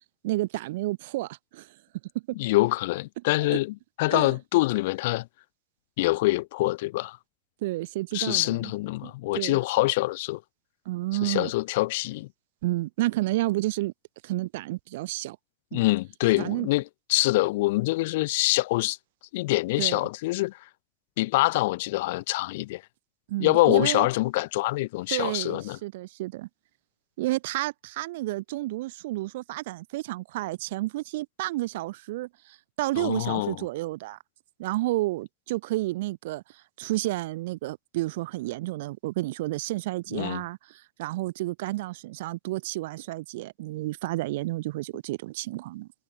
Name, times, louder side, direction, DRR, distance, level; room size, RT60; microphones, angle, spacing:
voice 1, 0.2-1.7 2.3-2.4 3.5-3.6 4.1-4.3 7.6-8.7 9.0-9.6 10.8-11.5 12.6-13.9 14.2-15.4 15.7-15.9 16.4-16.7 19.8-20.1 23.3-24.1 25.1-26.5 27.2-34.2 34.6-45.9, right 18 dB, 80° right, 6.3 m, -31 dB
voice 2, 2.4-5.3 6.0-7.2 8.1-10.4 11.2-12.3 15.7-16.8 17.1-19.0 19.3-20.7 21.2-22.8 23.4-25.8 33.0-33.6 40.1-40.4, left 20 dB, 70° left, 1.1 m, -25 dB
supercardioid pair, 165°, 0 cm